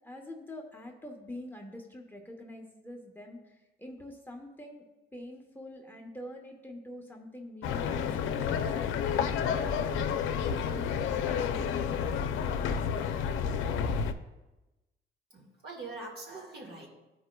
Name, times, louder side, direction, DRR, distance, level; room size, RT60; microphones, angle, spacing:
voice 1, 0.0-4.8 5.1-8.9 9.2-12.0, left 1 dB, 10° left, 1 dB, 1.0 m, -45 dB
sound 1, 7.6-14.1, left 7 dB, 80° left, 0.5 m, -30 dB
voice 2, 15.3-16.9, right 3 dB, 55° right, -1 dB, 1.8 m, -43 dB
13.5 x 4.9 x 2.3 m, 1.0 s
cardioid pair, 90°, 20 cm